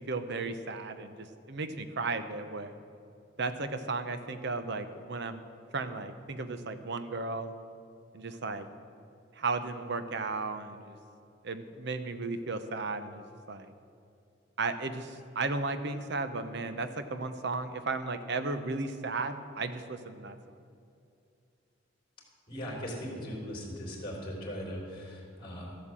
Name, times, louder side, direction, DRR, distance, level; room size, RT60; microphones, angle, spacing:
voice 1, 0.0-2.7 3.4-5.4 5.7-7.5 8.1-8.7 9.3-11.0 11.4-13.7 14.6-20.4, right 3 dB, 60° right, 10 dB, 0.9 m, -35 dB
voice 2, 22.5-25.7, equal, 25° left, -2 dB, 3.2 m, -39 dB
13.0 x 8.2 x 7.6 m, 2.5 s
head